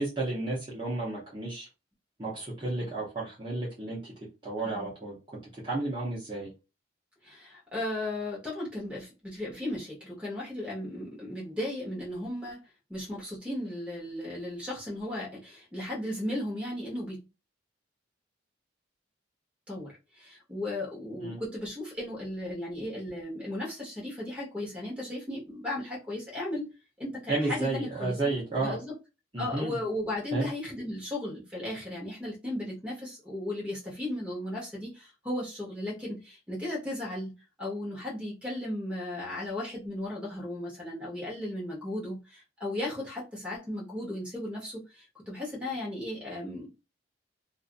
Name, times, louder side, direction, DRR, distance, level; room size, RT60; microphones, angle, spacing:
voice 1, 0.0-1.7 2.2-4.1 4.4-5.2 5.6-6.5 21.2-21.4 27.3-28.8 29.3-29.8 30.3-30.5, right 2 dB, 25° right, 0.8 m, -32 dB
voice 2, 7.2-12.6 12.9-17.2 19.7-26.7 27.0-28.2 28.6-28.9 29.4-46.7, left 1 dB, 5° right, 1.1 m, -36 dB
2.6 x 2.4 x 2.5 m
head